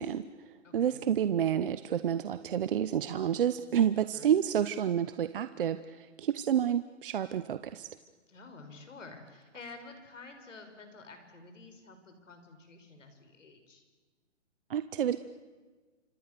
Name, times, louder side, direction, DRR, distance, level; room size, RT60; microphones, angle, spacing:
voice 1, 0.0-7.9 14.7-15.2, right 9 dB, 45° right, 12 dB, 0.9 m, -29 dB
voice 2, 0.6-1.0 4.1-4.3 8.3-13.8, left 3 dB, 85° left, 7 dB, 6.2 m, -50 dB
29.0 x 26.5 x 6.9 m, 1.3 s
hypercardioid pair, 160°, 37 cm